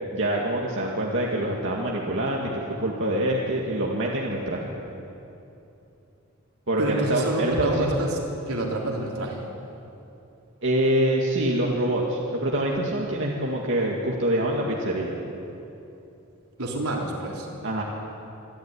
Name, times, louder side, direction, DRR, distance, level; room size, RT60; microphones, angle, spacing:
voice 1, 0.1-2.5 2.8-4.7 6.7-8.0 10.6-15.2 17.6-17.8, right 1 dB, 55° right, -2 dB, 2.1 m, -25 dB
voice 2, 6.8-8.1 8.5-9.4 16.6-17.5, right 1 dB, 80° right, -1 dB, 4.0 m, -28 dB
26.5 x 11.5 x 9.8 m, 2.8 s
head